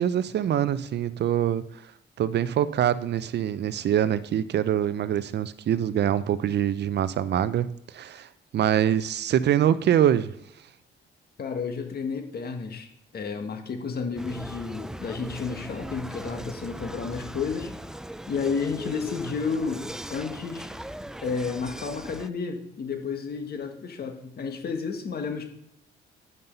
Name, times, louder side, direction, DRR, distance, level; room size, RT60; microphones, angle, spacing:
voice 1, 0.0-1.6 2.2-8.3 8.5-10.3, right 10 dB, 60° right, 15 dB, 0.6 m, -24 dB
voice 2, 11.4-17.7 18.3-20.7 21.2-25.4, left 5 dB, 50° left, 5 dB, 1.8 m, -31 dB
sound 1, 14.2-22.3, right 1 dB, 5° right, 0.3 m, -39 dB
9.5 x 5.5 x 5.5 m, 0.76 s
cardioid pair, 90°, 20 cm